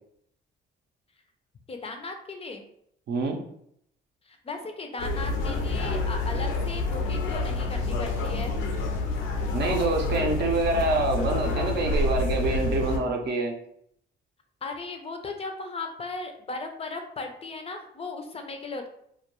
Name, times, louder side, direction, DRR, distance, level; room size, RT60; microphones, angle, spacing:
voice 1, 1.7-2.6 4.3-8.5 14.6-18.9, left 3 dB, 30° left, 4 dB, 0.4 m, -37 dB
sound 1, 5.0-13.0, left 2 dB, 90° left, 0.5 m, -28 dB
voice 2, 9.5-13.5, right 2 dB, 55° right, 2 dB, 0.5 m, -26 dB
2.2 x 2.2 x 2.9 m, 0.70 s
cardioid pair, 90°, 20 cm